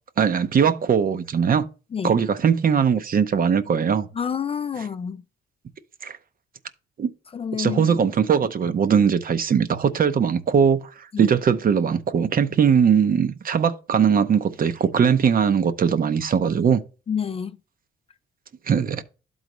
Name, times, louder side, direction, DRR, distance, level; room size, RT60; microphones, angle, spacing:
voice 1, 0.2-1.7 2.0-4.1 6.0-6.1 7.0-7.1 7.6-16.8 18.7-19.0, right 7 dB, 45° right, 0.7 m, -20 dB
voice 2, 4.1-5.2 7.3-8.1 11.1-11.3 17.1-17.6, left 7 dB, 30° left, 0.3 m, -28 dB
12.0 x 4.0 x 3.0 m
cardioid pair, 90°, 20 cm